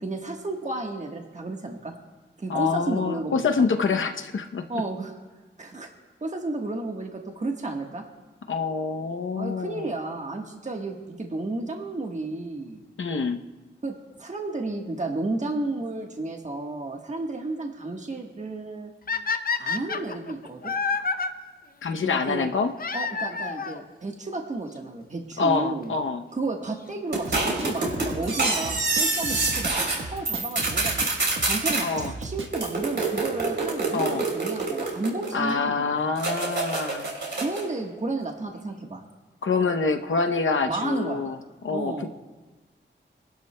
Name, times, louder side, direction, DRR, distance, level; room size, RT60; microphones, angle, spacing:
voice 1, 0.0-1.9 2.4-3.7 4.7-5.2 5.6-5.9 6.2-8.0 9.4-12.8 13.8-18.9 19.6-20.7 22.0-22.5 22.9-25.9 26.3-31.1 31.4-36.0 37.4-39.0 40.7-41.2 41.7-42.1, right 2 dB, 40° right, 2 dB, 1.3 m, -32 dB
voice 2, 2.5-4.8 8.5-9.9 13.0-13.4 21.8-22.7 25.4-26.2 31.8-32.1 33.9-34.2 35.3-37.1 39.4-41.4 41.6-42.1, left 4 dB, 80° left, 6 dB, 0.7 m, -26 dB
sound 1, 19.1-21.3 22.8-23.8 24.8-24.9 25.5-25.6 25.8-25.9 27.8-28.1 30.9-31.0 32.0-32.1 33.6-33.7 33.9-34.0 34.3-34.4 34.6-34.7 34.8-34.9 35.1-35.2 35.4-35.5, left 5 dB, 50° left, 0.6 m, -28 dB
sound 2, 27.1-30.0 30.2-31.8 32.5-35.5 36.2-37.7, right 3 dB, 65° right, 3.4 m, -26 dB
Drum kit, 27.2-32.8, right 3 dB, 85° right, 1.2 m, -36 dB
25.5 x 12.0 x 2.2 m, 1.3 s
wide cardioid pair, 105°, 20 cm